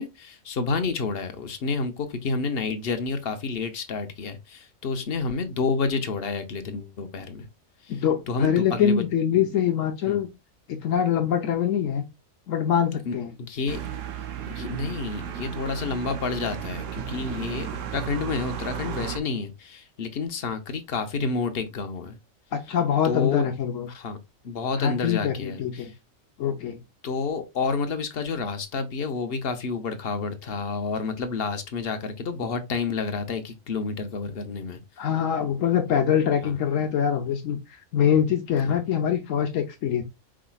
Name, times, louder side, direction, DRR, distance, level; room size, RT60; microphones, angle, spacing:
voice 1, 0.0-7.4 8.3-9.0 9.3-9.4 10.1-10.2 13.1-13.8 14.5-22.2 23.0-23.5 23.9-24.2 24.4-25.9 27.0-34.8 36.4-36.6 38.7-38.8, left 4 dB, 55° left, 0.9 m, -29 dB
voice 2, 7.9-10.3 10.7-12.0 12.5-13.3 22.5-23.9 24.8-25.9 26.4-26.8 35.0-40.0, left 8 dB, 75° left, 1.1 m, -24 dB
sound 1, 13.7-19.2, right 9 dB, 70° right, 1.1 m, -34 dB
4.8 x 4.2 x 2.3 m
omnidirectional pair, 1.4 m